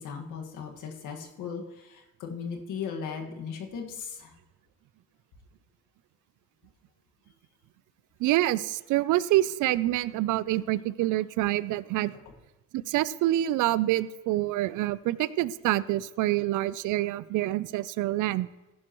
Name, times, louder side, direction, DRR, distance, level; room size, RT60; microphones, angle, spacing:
voice 1, 0.0-4.3, left 6 dB, 85° left, 2 dB, 1.8 m, -37 dB
voice 2, 8.2-12.2 12.7-18.5, right 15 dB, 80° right, 18 dB, 0.5 m, -26 dB
15.5 x 11.0 x 3.0 m, 1.1 s
cardioid pair, 90°, 30 cm